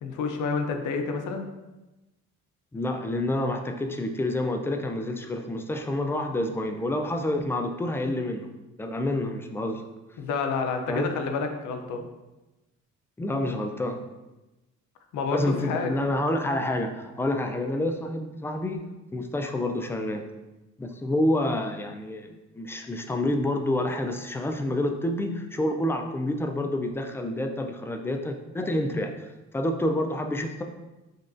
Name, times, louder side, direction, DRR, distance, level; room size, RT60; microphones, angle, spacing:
voice 1, 0.0-1.5 10.2-12.0 15.1-16.1, left 4 dB, 75° left, 5 dB, 0.6 m, -29 dB
voice 2, 2.7-8.5 8.8-9.8 10.9-11.1 13.2-14.0 15.3-18.8 19.1-20.2 20.8-29.1 29.5-30.6, left 1 dB, 10° left, 5 dB, 0.3 m, -28 dB
5.1 x 2.3 x 2.5 m, 1.0 s
cardioid pair, 90°, 30 cm